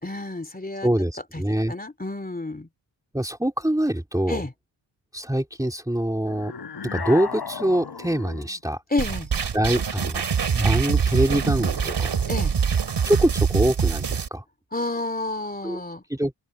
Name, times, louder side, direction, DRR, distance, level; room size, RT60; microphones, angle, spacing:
voice 1, 0.0-0.9 1.3-1.4 1.7-2.7 4.3-4.5 8.9-9.3 12.3-12.5 14.7-16.0, left 2 dB, 20° left, 3.0 m, -29 dB
voice 2, 0.8-1.7 3.1-4.4 5.1-6.5 6.9-8.8 9.5-10.2 10.5-12.1 13.0-14.4 15.6-15.8 16.1-16.3, right 1 dB, 5° right, 2.9 m, -24 dB
sound 1, 6.3-8.6, left 6 dB, 55° left, 3.6 m, -34 dB
sound 2, 9.0-14.3, right 6 dB, 60° right, 3.1 m, -24 dB
open air
cardioid pair, 65°, 46 cm